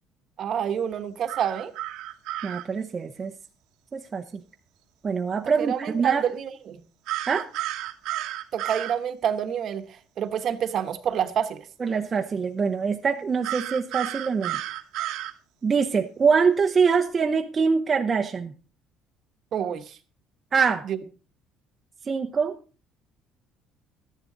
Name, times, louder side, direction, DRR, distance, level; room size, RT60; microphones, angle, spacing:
voice 1, 0.4-1.7 5.6-6.8 8.5-9.9 10.2-11.6 19.5-19.9 20.9-21.0, right 9 dB, 50° right, 1.2 m, -27 dB
sound 1, 1.3-2.6 7.1-9.0 13.4-15.3, right 14 dB, 75° right, 1.2 m, -32 dB
voice 2, 2.4-3.3 3.9-4.4 5.0-6.2 7.3-7.5 11.8-14.6 15.6-18.5 20.5-20.8 22.1-22.6, right 5 dB, 25° right, 0.8 m, -24 dB
13.0 x 10.5 x 4.0 m
cardioid pair, 135°, 0 cm